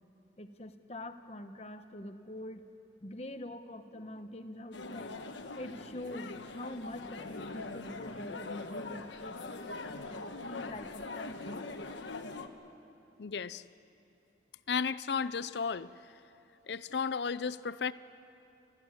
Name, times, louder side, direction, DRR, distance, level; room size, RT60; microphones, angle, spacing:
voice 1, 0.4-2.6 3.0-5.2 5.6-11.7, left 1 dB, 35° left, 8 dB, 1.1 m, -45 dB
sound 1, 4.7-12.5, left 3 dB, 85° left, 1.3 m, -42 dB
voice 2, 13.2-13.6 14.7-16.1 16.7-17.9, left 6 dB, 65° left, 16 dB, 0.5 m, -34 dB
27.0 x 14.5 x 9.7 m, 2.9 s
head